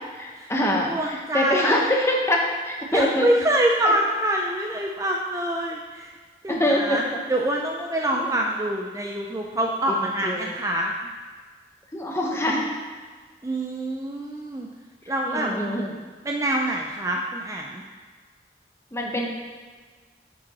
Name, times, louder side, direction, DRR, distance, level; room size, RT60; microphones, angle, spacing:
voice 1, 0.1-3.3 3.8-3.9 6.5-7.2 10.0-10.5 11.9-12.7 15.2-15.9 18.9-19.3, left 1 dB, 15° left, 0 dB, 0.8 m, -24 dB
voice 2, 0.9-1.9 2.9-6.1 6.4-10.9 13.4-14.7 15.1-15.5 16.2-17.8, right 1 dB, 20° right, 0 dB, 0.4 m, -25 dB
8.6 x 5.1 x 4.1 m, 1.5 s
head